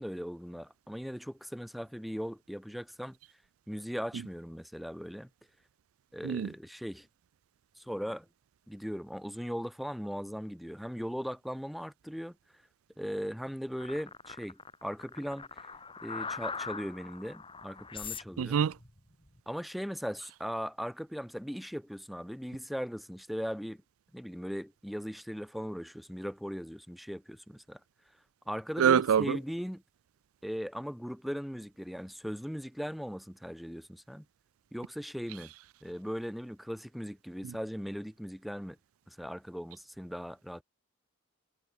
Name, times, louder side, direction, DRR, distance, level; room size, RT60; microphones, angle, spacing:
voice 1, 0.0-3.2 3.7-5.3 6.1-7.1 7.8-8.3 8.7-12.4 13.0-15.5 16.0-18.6 19.5-23.8 24.1-27.8 28.5-29.8 30.4-34.3 34.7-35.5 35.8-38.8 39.1-40.6, equal, ahead, 3.6 m, -38 dB
sound 1, 13.8-19.4, left 5 dB, 25° left, 3.2 m, -42 dB
voice 2, 18.4-18.7 28.8-29.4, right 8 dB, 90° right, 0.4 m, -25 dB
head